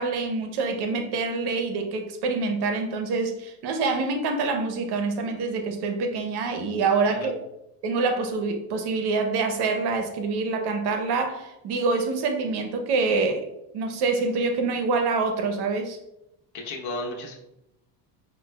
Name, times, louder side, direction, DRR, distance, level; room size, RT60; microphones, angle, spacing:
voice 1, 0.0-7.4 7.8-13.5 13.7-16.0, right 4 dB, 55° right, 5 dB, 0.7 m, -26 dB
voice 2, 16.5-17.3, left 2 dB, 55° left, 0 dB, 0.9 m, -33 dB
5.3 x 2.2 x 2.2 m, 0.88 s
supercardioid pair, 105°, 47 cm